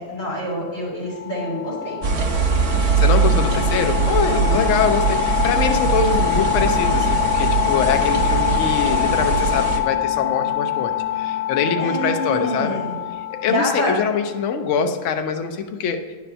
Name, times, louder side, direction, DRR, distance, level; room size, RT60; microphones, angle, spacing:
voice 1, 0.0-2.0 4.2-4.6 11.7-12.9 13.5-13.9, left 1 dB, 45° left, -5 dB, 3.4 m, -26 dB
sound 1, 1.1-14.6, left 12 dB, 80° left, 1.2 m, -25 dB
sound 2, 2.0-9.8, right 5 dB, 50° right, 0.9 m, -21 dB
voice 2, 3.0-12.8 13.4-16.0, left 6 dB, 60° left, 6 dB, 0.8 m, -23 dB
9.9 x 4.3 x 5.4 m, 1.5 s
omnidirectional pair, 1.9 m